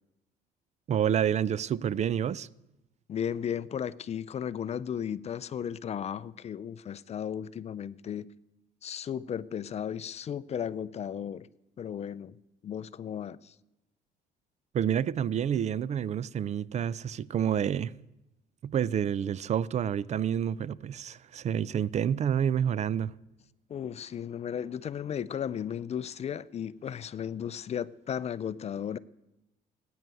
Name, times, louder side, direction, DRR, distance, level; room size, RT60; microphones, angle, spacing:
voice 1, 0.9-2.5 14.7-17.9 18.6-23.1, right 9 dB, 40° right, 0.5 m, -28 dB
voice 2, 3.1-8.3 8.8-11.5 11.8-12.4 12.6-13.5 23.7-29.0, left 8 dB, 40° left, 0.5 m, -35 dB
18.0 x 9.4 x 7.7 m
cardioid pair, 110°, 17 cm